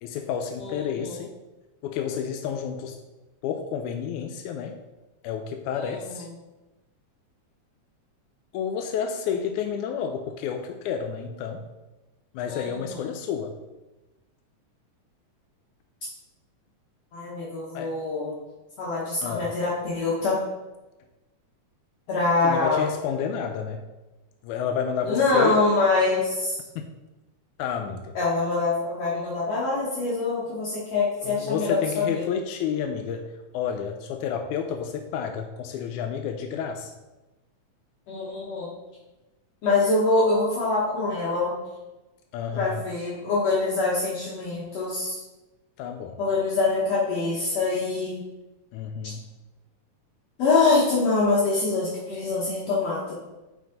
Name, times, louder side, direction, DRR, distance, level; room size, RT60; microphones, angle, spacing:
voice 1, 0.0-1.3 1.8-3.0 3.4-4.8 5.2-6.3 8.5-11.7 12.3-13.6 17.7-17.9 19.2-19.5 22.4-23.8 24.4-25.6 26.8-26.9 27.6-28.2 31.2-33.3 33.5-36.9 42.3-42.8 45.8-46.2 48.7-49.2, left 7 dB, 90° left, 5 dB, 2.0 m, -30 dB
voice 2, 0.6-1.2 5.7-6.2 12.5-13.0 17.1-18.3 18.8-20.4 22.1-22.9 25.0-26.6 28.2-32.3 38.1-38.7 39.6-41.6 42.5-45.2 46.2-48.2 50.4-53.1, left 3 dB, 65° left, -7 dB, 2.2 m, -24 dB
9.4 x 4.5 x 3.8 m, 1.1 s
omnidirectional pair, 3.4 m